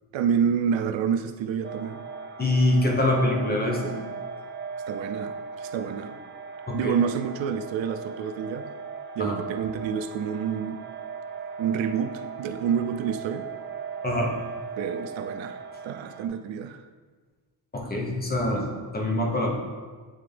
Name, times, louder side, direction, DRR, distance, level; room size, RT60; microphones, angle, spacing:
voice 1, 0.1-2.0 4.9-6.1 6.7-8.7 9.2-10.8 11.6-13.5 14.8-15.6 15.8-16.8, right 7 dB, 90° right, 8 dB, 0.5 m, -28 dB
sound 1, 1.6-16.3, right 5 dB, 30° right, 0.4 m, -38 dB
voice 2, 2.4-4.0 6.7-7.0 9.2-9.4 14.0-14.3 17.7-19.5, left 1 dB, 20° left, -1 dB, 0.9 m, -25 dB
8.9 x 3.7 x 3.3 m, 1.5 s
wide cardioid pair, 165°, 44 cm